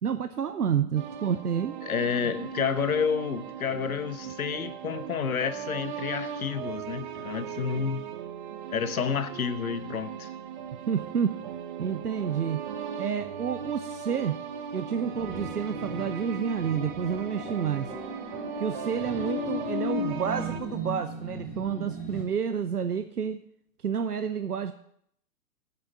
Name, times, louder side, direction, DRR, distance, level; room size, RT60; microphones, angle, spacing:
voice 1, 0.0-1.7 10.9-11.3 11.8-12.6 13.0-14.4 14.7-17.9 18.6-23.4 23.8-24.7, right 7 dB, 75° right, 10 dB, 0.7 m, -29 dB
sound 1, 1.0-20.6, right 8 dB, 30° right, 0.8 m, -38 dB
voice 2, 1.8-8.0 8.7-10.3, left 7 dB, 65° left, 12 dB, 1.0 m, -30 dB
sound 2, 14.9-22.2, left 2 dB, 25° left, 3.5 m, -36 dB
8.5 x 6.8 x 6.8 m, 0.69 s
figure-of-eight pair, 120°, 46 cm